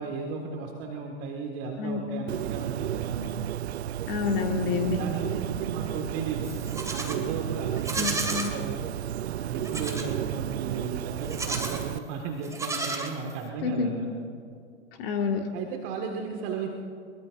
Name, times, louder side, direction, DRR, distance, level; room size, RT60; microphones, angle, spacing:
voice 1, 0.0-3.3 4.6-9.0 9.2-14.1 15.5-16.7, right 5 dB, 40° right, 2 dB, 1.8 m, -35 dB
Bird, 2.3-12.0, right 11 dB, 70° right, 0.5 m, -33 dB
voice 2, 4.1-5.0 8.0-8.5 13.6-14.0 15.0-15.5, left 5 dB, 55° left, 4 dB, 1.8 m, -28 dB
Livestock farm animals working animals, 6.4-7.2 7.8-8.5 9.6-10.1 11.2-11.9 12.4-13.5, right 3 dB, 10° right, 1.9 m, -33 dB
23.0 x 22.5 x 2.5 m, 2.4 s
figure-of-eight pair, 95°, 34 cm